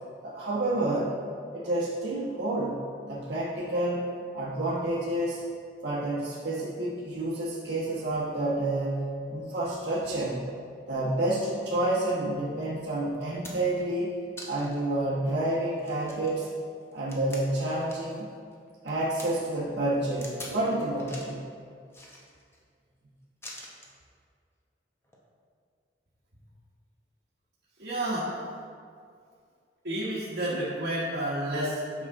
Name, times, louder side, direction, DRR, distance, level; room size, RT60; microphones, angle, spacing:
voice 1, 0.2-1.2 1.5-2.8 3.1-4.1 4.3-5.5 5.8-10.5 10.9-16.5 16.9-18.3 18.8-21.5, right 1 dB, 85° right, -9 dB, 1.2 m, -29 dB
sound 1, 12.6-12.7 13.1-13.8 14.4-14.8 15.3-15.4 15.8-18.2 18.5-19.3 20.2-20.6 21.0-21.4 21.9-22.6 23.4-24.0 25.0-25.2, left 1 dB, 15° left, 0.9 m, -45 dB
voice 2, 27.8-28.3 29.8-32.1, right 1 dB, 65° right, -9 dB, 1.3 m, -30 dB
8.5 x 5.8 x 3.6 m, 2.2 s
head